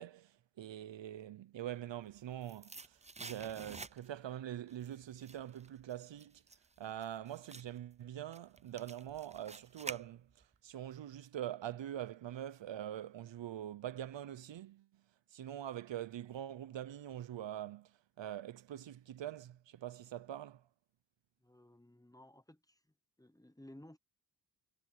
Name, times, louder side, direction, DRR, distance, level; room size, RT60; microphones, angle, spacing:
voice 1, 0.0-6.4 6.8-15.0 15.3-20.6, right 11 dB, 70° right, 0.7 m, -44 dB
sound 1, 2.1-4.3 4.7-10.6 10.9-11.0, right 3 dB, 15° right, 0.5 m, -50 dB
voice 2, 21.4-22.8 23.2-24.0, left 1 dB, 10° left, 0.9 m, -57 dB
wide cardioid pair, 130°, 46 cm